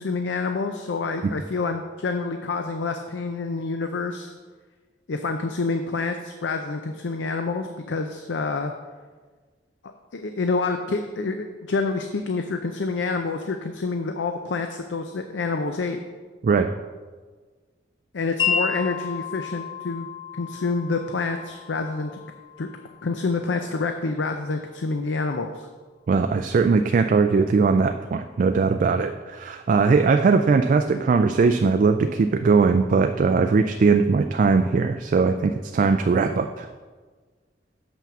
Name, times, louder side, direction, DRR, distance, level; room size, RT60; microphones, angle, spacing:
voice 1, 0.0-4.3 5.1-8.7 10.1-16.0 18.1-20.1 20.3-22.1 22.6-22.7 23.0-25.7, left 3 dB, 80° left, 6 dB, 0.5 m, -27 dB
voice 2, 16.4-16.7 26.1-36.7, right 4 dB, 45° right, 8 dB, 0.3 m, -20 dB
Wind chime, 18.4-24.5, left 7 dB, 25° left, 1.0 m, -32 dB
7.1 x 5.8 x 6.0 m, 1.4 s
head